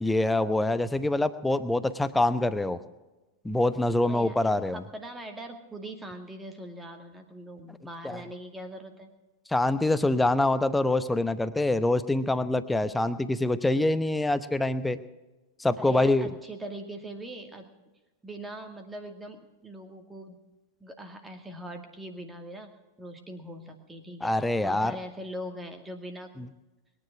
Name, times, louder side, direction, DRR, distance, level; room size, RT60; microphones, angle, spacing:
voice 1, 0.0-2.8 3.4-4.8 9.5-15.0 15.6-16.3 24.2-24.9, left 2 dB, 5° left, 13 dB, 0.8 m, -25 dB
voice 2, 4.1-9.1 15.8-17.7 18.2-20.4 20.8-22.7 23.0-26.4, right 1 dB, 10° right, 5 dB, 2.2 m, -41 dB
21.5 x 10.0 x 5.9 m, 1.1 s
figure-of-eight pair, 90°, 0 cm